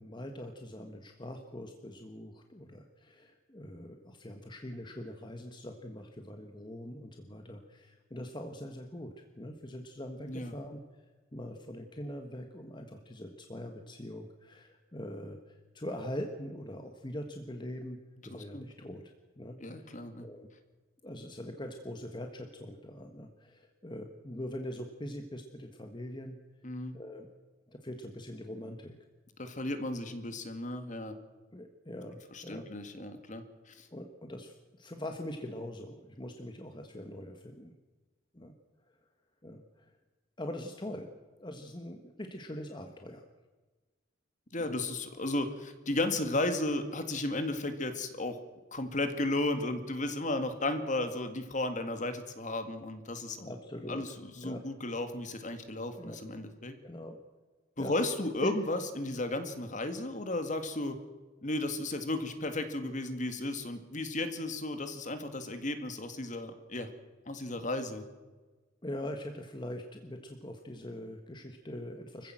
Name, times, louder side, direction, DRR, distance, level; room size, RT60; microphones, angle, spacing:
voice 1, 0.0-11.0 11.3-18.0 18.2-19.0 19.4-20.5 21.0-26.4 26.9-27.3 27.7-28.9 31.5-32.7 33.9-37.8 38.3-38.5 39.4-39.9 40.4-41.1 41.4-43.2 44.6-44.8 53.4-54.0 54.4-54.6 56.0-56.2 56.8-57.2 57.8-57.9 58.4-58.5 68.8-72.3, left 1 dB, 25° left, 5 dB, 1.4 m, -42 dB
voice 2, 18.3-18.9 19.6-20.3 26.6-27.0 29.4-31.2 32.3-33.9 44.5-48.4 48.7-53.5 53.9-56.8 57.8-61.0 61.4-66.9 67.3-68.1, left 2 dB, 40° left, 9 dB, 1.9 m, -34 dB
25.0 x 15.5 x 7.6 m, 1.3 s
head